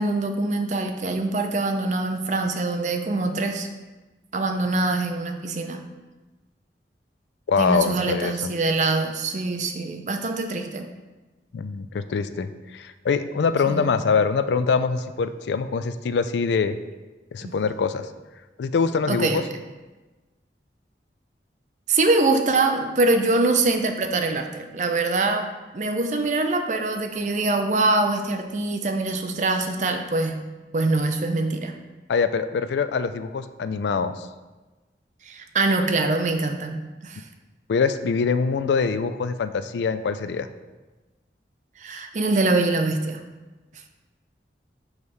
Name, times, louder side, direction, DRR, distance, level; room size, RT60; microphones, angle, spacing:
voice 1, 0.0-3.7 4.3-5.8 7.6-10.9 13.7-14.0 17.4-17.5 19.1-19.4 21.9-25.5 25.7-30.4 30.7-31.7 35.2-37.2 41.8-43.2, right 2 dB, 40° right, 5 dB, 0.5 m, -24 dB
voice 2, 7.5-8.3 11.5-16.8 17.3-18.1 18.6-19.4 32.1-34.3 37.7-40.5, left 5 dB, 85° left, 12 dB, 0.4 m, -24 dB
6.2 x 3.3 x 5.3 m, 1.2 s
head